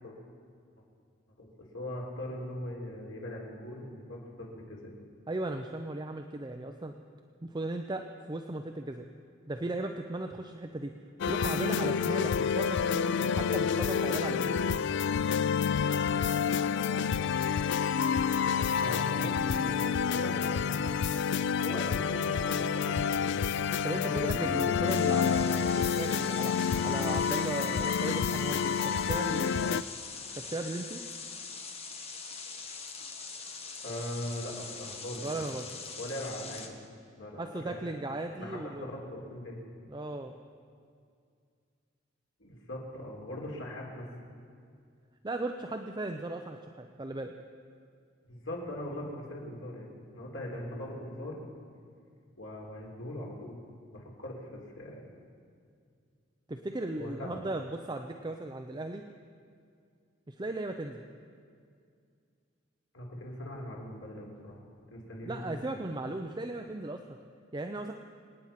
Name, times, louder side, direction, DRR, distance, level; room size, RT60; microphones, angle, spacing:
voice 1, 1.7-4.9 18.8-20.8 21.6-23.5 24.0-24.5 33.8-35.5 36.0-36.8 37.2-38.1 38.4-39.6 42.4-44.1 48.3-51.4 52.4-53.6 53.9-55.1 56.9-57.4 62.9-64.6 64.9-65.8, left 1 dB, 85° left, -2 dB, 3.8 m, -40 dB
voice 2, 5.3-6.9 7.4-9.0 9.5-10.9 11.3-14.7 23.8-26.5 26.8-29.8 30.3-31.0 35.2-35.7 37.4-38.9 39.9-40.3 45.2-47.3 56.5-59.0 60.3-61.0 65.2-67.0 67.5-67.9, right 2 dB, 20° right, 5 dB, 0.6 m, -37 dB
sound 1, 11.2-29.8, left 6 dB, 60° left, 0.4 m, -28 dB
sound 2, 24.9-36.7, left 5 dB, 30° left, 1.4 m, -43 dB
26.5 x 9.3 x 5.8 m, 2.3 s
head